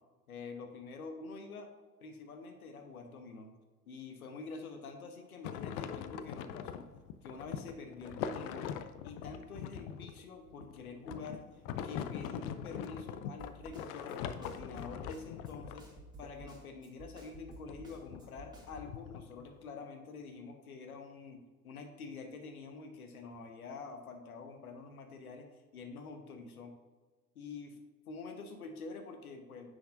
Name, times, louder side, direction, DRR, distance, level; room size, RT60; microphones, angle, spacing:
voice 1, 0.3-1.7 2.0-3.5 3.9-6.9 7.2-8.7 9.0-11.4 11.8-15.9 16.2-26.7 27.3-27.8 28.1-29.7, left 4 dB, 75° left, 5 dB, 1.1 m, -47 dB
sound 1, 5.4-16.4 17.3-19.6, left 8 dB, 45° left, 0.6 m, -42 dB
Snare drum, 13.4-18.9, right 2 dB, 10° right, 2.0 m, -52 dB
9.6 x 6.3 x 2.6 m, 1.3 s
figure-of-eight pair, 70°, 44 cm